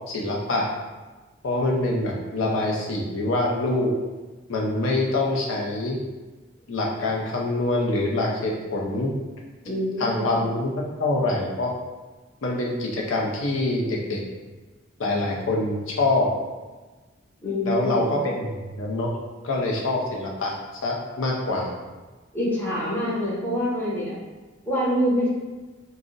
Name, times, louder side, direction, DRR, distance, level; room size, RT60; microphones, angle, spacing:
voice 1, 0.1-0.7 1.4-3.9 4.5-6.0 6.7-9.1 10.0-10.7 11.0-11.7 12.4-14.2 15.0-16.3 17.6-19.1 19.4-20.5 20.8-21.7, left 2 dB, 85° left, -1 dB, 0.5 m, -25 dB
voice 2, 9.6-10.3 17.4-18.0 22.3-24.2 24.7-25.3, equal, 10° left, -8 dB, 0.7 m, -25 dB
2.5 x 2.0 x 3.7 m, 1.3 s
head